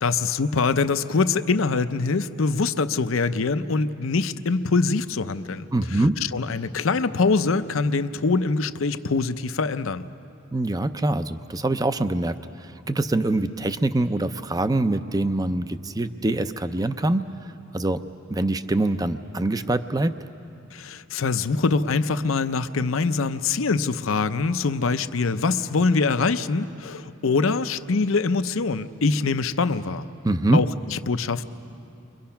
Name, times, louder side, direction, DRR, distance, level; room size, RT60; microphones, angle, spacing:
voice 1, 0.0-6.0 6.3-10.1 20.7-30.1 30.5-31.4, left 4 dB, 75° left, 11 dB, 0.7 m, -24 dB
voice 2, 5.7-6.2 10.5-17.3 17.7-18.0 18.3-20.1 30.2-30.6, right 2 dB, 20° right, 10 dB, 0.5 m, -24 dB
30.0 x 24.0 x 5.8 m, 2.7 s
head